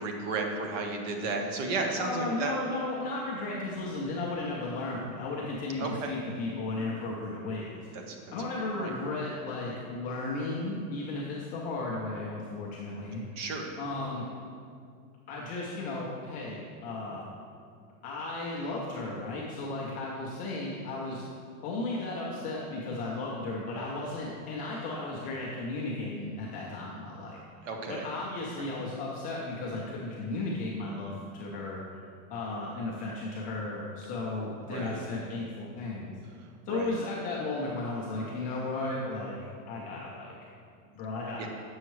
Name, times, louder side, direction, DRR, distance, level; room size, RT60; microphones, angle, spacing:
voice 1, 0.0-2.5 5.8-6.1 7.9-8.3 8.8-8.9 13.4-13.7 27.6-28.1 28.6-28.7 34.7-35.0 36.4-37.0 41.4-41.5, right 3 dB, 55° right, 3 dB, 1.0 m, -34 dB
voice 2, 1.9-7.9 8.3-13.2 13.8-14.3 15.3-17.3 18.0-21.2 21.6-27.4 27.9-31.8 32.3-36.1 36.7-39.4 39.7-40.3 40.9-41.5, left 2 dB, 20° left, -5 dB, 0.3 m, -35 dB
7.8 x 6.3 x 3.0 m, 2.3 s
supercardioid pair, 160°, 44 cm